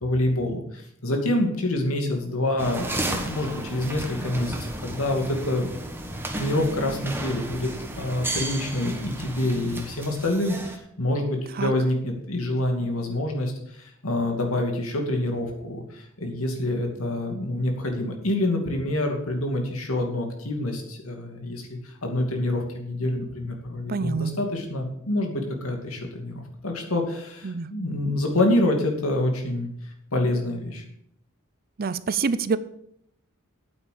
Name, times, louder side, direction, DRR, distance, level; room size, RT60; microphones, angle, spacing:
voice 1, 0.0-5.7 6.3-30.8, left 1 dB, 80° left, 3 dB, 2.5 m, -27 dB
sound 1, 2.6-10.8, right 1 dB, 10° right, 1.4 m, -33 dB
voice 2, 23.9-24.3 27.4-27.7 31.8-32.6, right 5 dB, 45° right, 15 dB, 0.5 m, -26 dB
8.9 x 8.4 x 6.8 m, 0.73 s
head